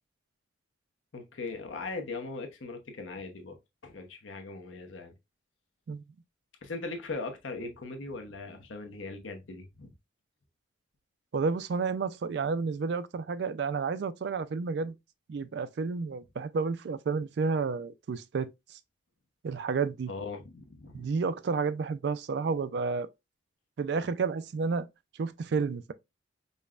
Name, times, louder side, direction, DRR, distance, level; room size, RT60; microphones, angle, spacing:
voice 1, 1.1-3.6 3.8-5.1 6.6-9.9 20.1-21.0, left 3 dB, 80° left, 0.9 m, -39 dB
voice 2, 11.3-14.9 15.3-18.5 19.4-20.1 20.9-23.1 23.8-24.9 25.2-25.9, right 4 dB, 55° right, 0.3 m, -31 dB
5.3 x 2.1 x 2.4 m
head